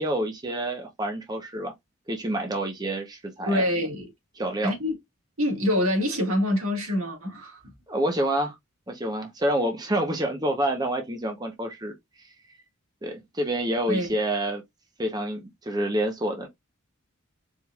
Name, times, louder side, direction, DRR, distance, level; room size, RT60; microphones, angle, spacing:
voice 1, 0.0-1.7 2.1-3.6 4.4-4.7 7.9-8.6 8.9-11.9 12.2-12.3 13.0-14.6 15.0-16.5, right 1 dB, 20° right, 0.7 m, -28 dB
voice 2, 3.5-4.1 4.6-4.9 5.4-7.7 13.9-14.1, left 1 dB, 85° right, 1.8 m, -25 dB
4.4 x 3.5 x 2.3 m
head